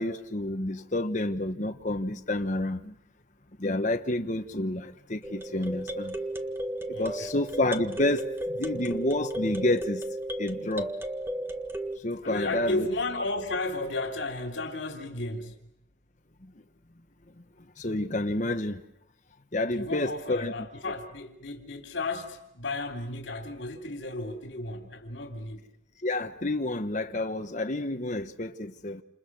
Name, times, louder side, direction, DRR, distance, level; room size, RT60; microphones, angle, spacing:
voice 1, 0.0-3.0 3.6-6.1 6.9-10.0 10.4-10.9 12.0-12.9 16.4-16.5 17.8-18.8 19.5-20.5 26.0-29.0, left 1 dB, 40° left, 1.3 m, -29 dB
sound 1, 5.2-12.0, right 1 dB, 10° right, 1.6 m, -34 dB
voice 2, 6.9-7.3 12.2-15.5 19.7-25.7, left 2 dB, 70° left, 3.4 m, -33 dB
29.5 x 28.0 x 6.3 m
head